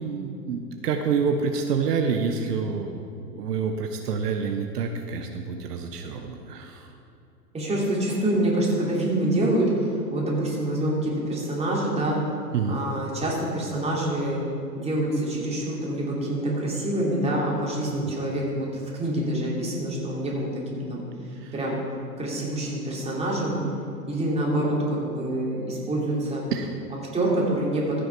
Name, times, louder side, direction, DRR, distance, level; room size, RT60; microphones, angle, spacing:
voice 1, 0.0-3.1 3.3-6.9 12.5-12.8 21.4-21.6 23.6-23.7 26.5-26.7, right 5 dB, 70° right, 4 dB, 1.0 m, -28 dB
voice 2, 7.5-9.7 10.1-12.2 12.7-14.4 14.7-18.7 19.0-21.0 21.5-21.8 22.2-23.6 24.1-26.4 27.1-27.8, right 1 dB, 10° right, -4 dB, 3.0 m, -26 dB
15.0 x 6.4 x 4.6 m, 2.5 s
hypercardioid pair, 105°, 49 cm